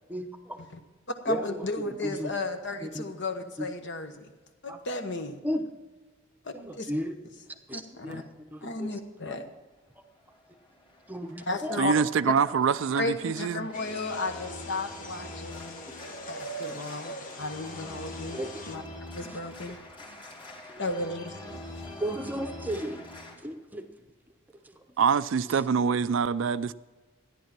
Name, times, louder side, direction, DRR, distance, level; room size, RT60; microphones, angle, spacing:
voice 1, 0.1-0.7 1.3-2.3 2.8-3.1 3.6-3.7 4.7-4.8 5.4-5.7 6.5-7.1 7.7-8.9 9.2-9.5 11.1-11.8 16.7-16.8 18.3-18.6 19.3-19.4 20.7-20.8 22.0-23.0 23.4-23.9 24.5-24.8, equal, 10° right, 0.8 m, -35 dB
voice 2, 1.2-4.3 4.6-5.4 6.4-6.9 7.7-8.2 8.6-9.4 11.5-11.9 12.2-12.3 13.0-15.8 16.3-18.4 18.7-18.8 19.1-19.8 20.8-21.9, left 2 dB, 55° left, 1.2 m, -34 dB
Organ, 10.2-23.4, left 1 dB, 25° left, 2.4 m, -45 dB
voice 3, 11.8-13.7 25.0-26.7, right 6 dB, 60° right, 0.4 m, -25 dB
sound 1, 13.7-18.8, equal, 40° left, 1.1 m, -43 dB
13.5 x 10.5 x 6.0 m
head